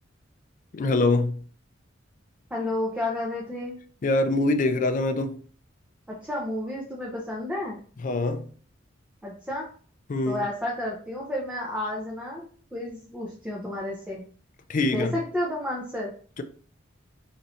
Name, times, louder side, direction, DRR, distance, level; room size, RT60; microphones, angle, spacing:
voice 1, 0.7-1.4 4.0-5.4 8.0-8.5 10.1-10.5 14.7-15.2 16.4-16.5, left 2 dB, 40° left, 0.4 m, -24 dB
voice 2, 2.5-3.8 6.1-7.8 9.2-9.7 10.3-12.4 12.7-14.2 14.9-16.1, left 1 dB, 5° right, 0.6 m, -31 dB
4.0 x 3.1 x 2.7 m
head